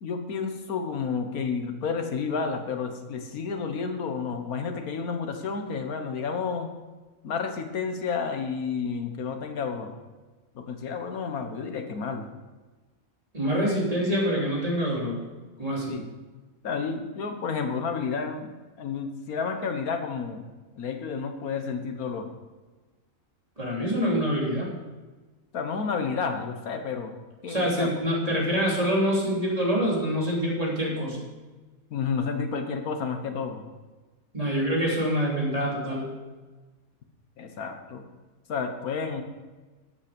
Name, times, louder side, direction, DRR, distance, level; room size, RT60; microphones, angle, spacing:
voice 1, 0.0-6.7 7.2-9.9 10.5-12.3 15.9-16.0 16.6-20.4 20.7-22.3 25.5-27.1 27.4-28.0 31.9-33.6 37.4-38.0 38.5-39.2, left 5 dB, 90° left, 6 dB, 1.6 m, -31 dB
voice 2, 13.3-15.2 15.6-16.0 23.6-24.7 27.5-31.2 34.3-36.1, equal, 25° right, -4 dB, 3.3 m, -26 dB
12.5 x 8.4 x 5.2 m, 1.3 s
omnidirectional pair, 1.5 m